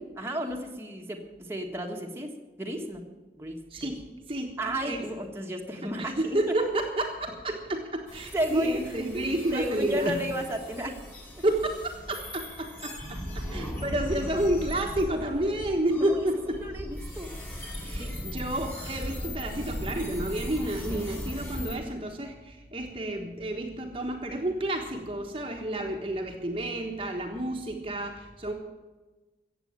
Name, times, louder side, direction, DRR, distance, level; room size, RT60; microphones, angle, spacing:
voice 1, 0.2-3.0 3.4-3.9 4.6-6.5 8.3-8.8 9.1-11.0 13.5-13.7 15.4-15.5 16.0-17.3 17.9-18.1 20.9-21.0, right 1 dB, 15° right, 1 dB, 1.5 m, -33 dB
voice 2, 3.7-4.0 4.3-4.5 4.9-5.0 6.0-10.2 11.4-16.6 17.8-28.5, right 1 dB, 30° right, 2 dB, 1.3 m, -30 dB
sound 1, 8.1-21.8, equal, 10° left, 3.8 m, -38 dB
15.5 x 8.2 x 8.7 m, 1.3 s
head